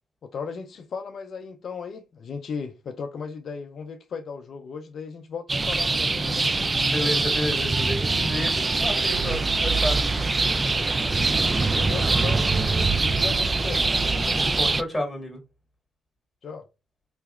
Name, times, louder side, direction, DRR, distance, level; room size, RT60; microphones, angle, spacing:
voice 1, 0.2-6.5 11.7-12.4 13.0-13.8 16.4-16.7, left 5 dB, 55° left, 0.4 m, -36 dB
sound 1, 5.5-14.8, right 3 dB, 25° right, 0.3 m, -23 dB
Wind instrument woodwind instrument, 5.6-11.3, right 3 dB, 90° right, 1.5 m, -47 dB
voice 2, 6.9-10.6 14.3-15.4, left 1 dB, 10° left, 1.8 m, -31 dB
3.8 x 2.9 x 2.3 m
cardioid pair, 90°, 0 cm